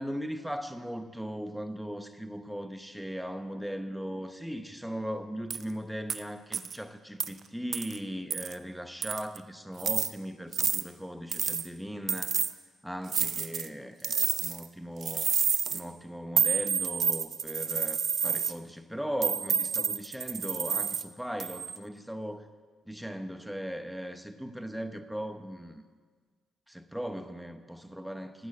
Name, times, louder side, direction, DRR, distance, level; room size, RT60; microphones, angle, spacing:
voice 1, 0.0-12.4 12.8-15.3 15.7-22.5 22.8-25.8 26.7-28.5, equal, ahead, 9 dB, 0.9 m, -38 dB
sound 1, 5.5-5.6 6.1-6.2 6.5-6.8 7.2-7.3 7.7-8.0 8.3-8.5 9.0-9.4 9.8-10.1 10.5-10.8 11.3-11.7 12.1-12.5 13.1-13.7 14.0-14.7 15.0-15.8 16.4-18.5 19.2-21.0 21.4-21.8, right 7 dB, 50° right, 0.6 m, -29 dB
13.5 x 9.0 x 7.6 m, 1.5 s
cardioid pair, 90°, 0 cm